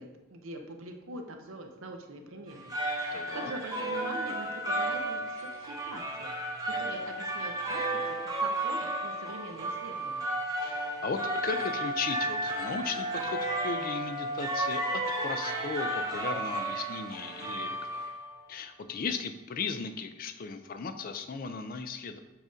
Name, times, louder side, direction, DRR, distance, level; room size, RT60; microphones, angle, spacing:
voice 1, 0.0-2.7 3.0-10.3, right 2 dB, 70° right, 4 dB, 0.7 m, -43 dB
sound 1, 2.5-18.4, right 1 dB, 15° right, 0.7 m, -33 dB
voice 2, 3.1-3.5 10.6-18.0 18.5-22.2, left 5 dB, 40° left, 9 dB, 0.4 m, -36 dB
sound 2, 11.1-17.7, equal, 85° left, 1.2 m, -38 dB
7.3 x 2.6 x 4.9 m, 1.1 s
head